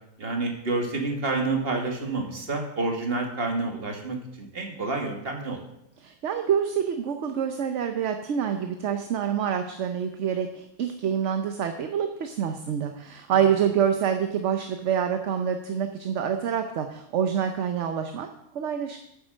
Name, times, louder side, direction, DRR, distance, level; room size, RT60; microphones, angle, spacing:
voice 1, 0.2-5.6 13.3-13.5, right 3 dB, 40° right, 2 dB, 1.9 m, -29 dB
voice 2, 6.0-18.3 18.5-19.0, right 8 dB, 60° right, 6 dB, 1.0 m, -26 dB
9.5 x 7.6 x 6.4 m, 0.81 s
omnidirectional pair, 1.5 m